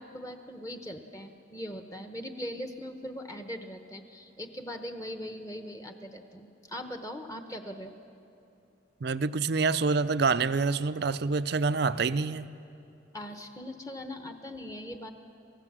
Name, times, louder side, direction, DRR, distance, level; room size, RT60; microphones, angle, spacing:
voice 1, 0.0-7.9 13.1-15.1, equal, 20° left, 6 dB, 1.0 m, -40 dB
voice 2, 9.0-12.5, right 4 dB, 55° right, 14 dB, 0.5 m, -27 dB
27.5 x 15.5 x 7.4 m, 2.7 s
head